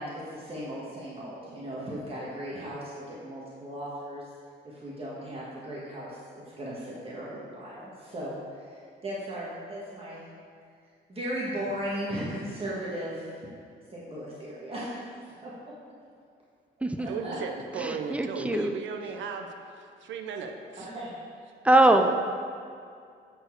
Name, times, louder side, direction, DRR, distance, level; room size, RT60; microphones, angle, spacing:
voice 1, 0.0-4.2 4.6-6.2 6.6-10.2 11.1-13.4 13.9-15.0 15.4-15.5 17.0-17.4 20.7-21.2, equal, 30° right, -7 dB, 1.6 m, -37 dB
voice 2, 17.1-19.5 19.7-20.9 21.9-22.2, right 5 dB, 70° right, 4 dB, 0.7 m, -36 dB
voice 3, 17.8-18.7 21.6-22.2, right 1 dB, 5° right, 6 dB, 0.5 m, -22 dB
8.0 x 4.4 x 4.7 m, 2.3 s
cardioid pair, 90°, 20 cm